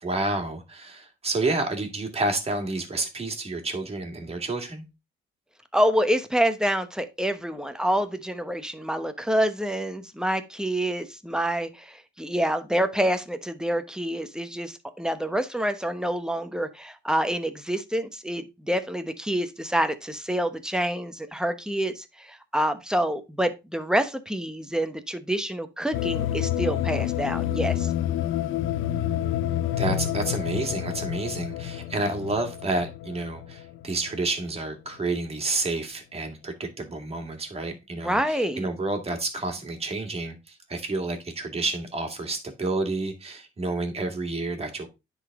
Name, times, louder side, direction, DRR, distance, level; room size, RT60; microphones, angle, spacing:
voice 1, 0.0-4.9 29.8-44.9, right 2 dB, 30° right, 2.1 m, -30 dB
voice 2, 5.7-27.9 38.0-38.7, equal, 5° right, 0.9 m, -27 dB
sound 1, 25.9-34.1, left 11 dB, 80° left, 0.5 m, -28 dB
9.9 x 4.1 x 3.6 m
cardioid pair, 90°, 20 cm